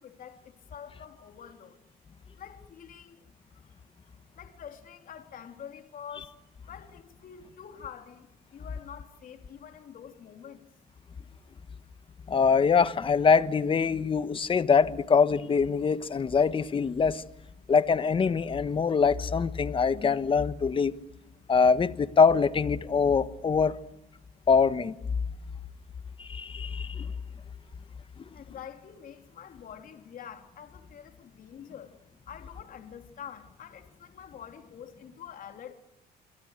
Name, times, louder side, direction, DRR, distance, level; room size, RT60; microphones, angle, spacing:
voice 1, 0.0-1.8 2.3-3.3 3.5-3.7 4.3-6.3 6.7-10.7 28.3-32.0 32.3-35.7, left 8 dB, 55° left, 3.6 m, -46 dB
voice 2, 12.3-17.2 17.7-20.9 21.5-23.8 24.5-24.9 26.2-27.1, left 5 dB, 30° left, 1.3 m, -24 dB
27.5 x 24.5 x 6.7 m
cardioid pair, 110°, 17 cm